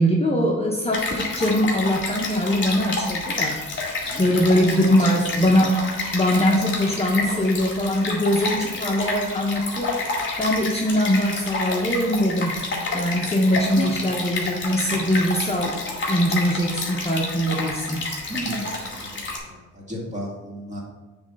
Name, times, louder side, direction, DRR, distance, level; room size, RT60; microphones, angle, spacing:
voice 1, 0.0-5.8 6.1-12.6 12.9-15.8 16.1-18.1, equal, 20° left, -1 dB, 0.8 m, -22 dB
Stream, 0.9-19.4, left 3 dB, 40° left, 2.1 m, -29 dB
voice 2, 4.1-4.4 4.8-5.6 13.8-14.0 14.9-15.3 18.3-20.8, right 1 dB, 25° right, -3 dB, 2.2 m, -34 dB
7.1 x 3.3 x 5.3 m, 1.2 s
cardioid pair, 90°, 30 cm